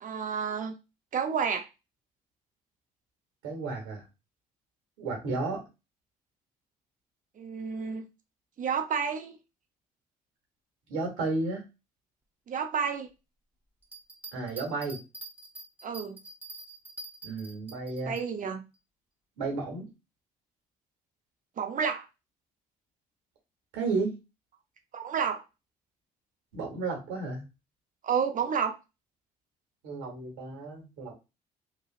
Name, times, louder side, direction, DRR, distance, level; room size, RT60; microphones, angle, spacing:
voice 1, 0.0-0.7 1.1-1.7 7.4-8.1 8.6-9.4 12.5-13.1 15.8-16.2 18.0-18.6 21.6-22.1 24.9-25.4 28.0-28.8, right 6 dB, 45° right, 0.7 m, -30 dB
voice 2, 3.4-4.0 5.0-5.6 10.9-11.6 14.3-15.0 17.2-18.2 19.4-19.9 23.7-24.2 26.5-27.4 29.8-31.1, right 3 dB, 80° right, 1.2 m, -32 dB
sound 1, 13.8-18.3, right 3 dB, 10° right, 0.9 m, -45 dB
3.1 x 2.3 x 2.4 m
hypercardioid pair, 55°, 19 cm